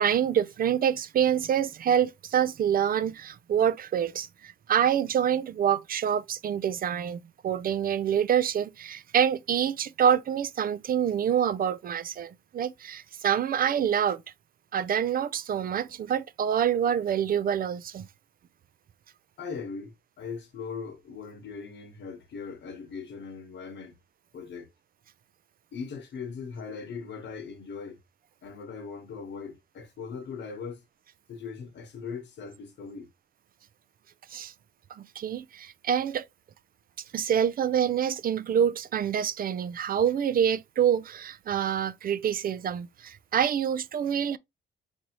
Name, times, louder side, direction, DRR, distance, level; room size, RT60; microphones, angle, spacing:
voice 1, 0.0-14.2 14.7-18.1 34.3-34.5 35.0-36.3 37.1-44.4, right 9 dB, 45° right, 0.4 m, -26 dB
voice 2, 19.4-24.0 24.3-24.7 25.7-28.0 28.4-30.8 31.3-33.1, left 5 dB, 60° left, 1.1 m, -39 dB
4.7 x 2.7 x 2.9 m
cardioid pair, 90°, 20 cm